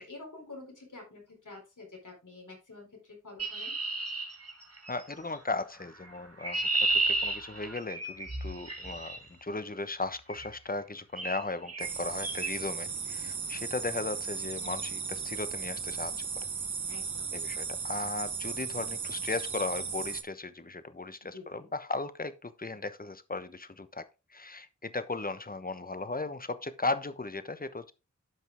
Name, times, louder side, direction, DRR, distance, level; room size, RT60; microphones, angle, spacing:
voice 1, 0.0-3.8 12.5-12.6 16.9-17.4 21.2-21.7, left 3 dB, 80° left, 4.2 m, -48 dB
Chirp tweet, 3.4-5.0 6.0-9.2 10.3-10.6 11.2-11.4 11.7-11.9 12.2-12.5, right 2 dB, 50° right, 2.2 m, -32 dB
voice 2, 4.9-16.3 17.3-24.0 24.3-27.9, left 3 dB, 30° left, 1.0 m, -36 dB
sound 1, 11.8-20.2, right 5 dB, 70° right, 1.0 m, -36 dB
12.0 x 5.4 x 3.5 m
wide cardioid pair, 45°, 30 cm